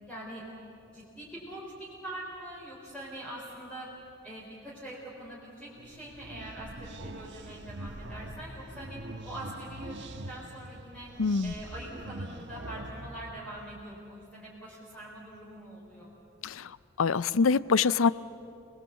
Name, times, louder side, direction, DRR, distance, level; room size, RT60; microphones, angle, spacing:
voice 1, 0.1-0.4 0.9-3.9 4.2-11.1 11.4-16.1, right 1 dB, 5° left, -6 dB, 4.3 m, -43 dB
sound 1, 5.8-13.9, right 1 dB, 55° right, 1.2 m, -43 dB
voice 2, 11.2-11.5 16.4-16.7 17.0-18.1, left 5 dB, 70° left, 18 dB, 0.5 m, -24 dB
28.0 x 20.0 x 8.2 m, 2.8 s
head